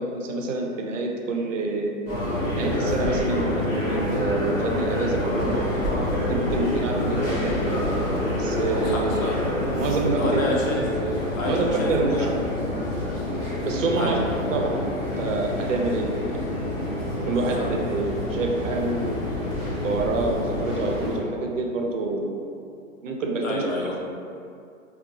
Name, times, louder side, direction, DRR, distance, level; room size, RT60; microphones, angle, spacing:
voice 1, 0.0-1.9 2.6-5.6 6.3-7.9 8.3-9.1 9.7-10.4 11.5-12.3 12.7-12.9 13.4-14.2 14.5-16.5 17.3-19.2 19.7-22.4 23.0-24.0, right 3 dB, 70° right, 1 dB, 0.6 m, -27 dB
sound 1, 2.1-21.2, left 1 dB, 25° left, 0.8 m, -27 dB
voice 2, 8.8-9.3 10.2-10.8 11.3-12.3 14.0-14.3 17.6-17.7 23.4-24.0, left 2 dB, 75° left, -2 dB, 0.8 m, -28 dB
3.5 x 2.3 x 2.6 m, 2.4 s
hypercardioid pair, 165°, 41 cm